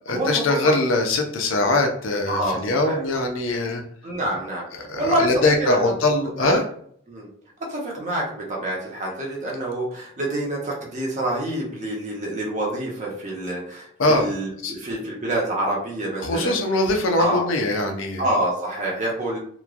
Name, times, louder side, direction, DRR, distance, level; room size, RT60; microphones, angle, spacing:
voice 1, 0.1-3.8 4.8-6.6 14.0-14.3 14.6-14.7 16.2-18.2, left 2 dB, 90° left, 3 dB, 0.6 m, -22 dB
voice 2, 2.3-3.0 4.0-5.9 6.4-6.6 7.1-7.3 7.7-16.6 17.2-17.4 18.2-19.4, right 1 dB, 40° right, -2 dB, 0.8 m, -27 dB
3.0 x 2.2 x 2.4 m, 0.62 s
head